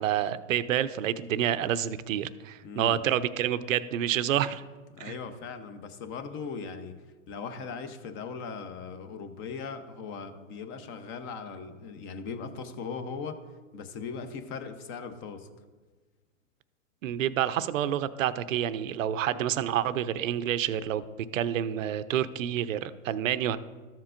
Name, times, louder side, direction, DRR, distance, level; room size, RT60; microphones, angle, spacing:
voice 1, 0.0-4.6 5.0-5.2 17.0-21.0 21.3-23.6, right 10 dB, 75° right, 14 dB, 0.6 m, -28 dB
voice 2, 2.6-3.0 4.9-6.9 7.3-13.4 13.7-15.5, left 5 dB, 30° left, 9 dB, 0.8 m, -39 dB
13.5 x 7.4 x 2.5 m, 1.4 s
hypercardioid pair, 125°, 40 cm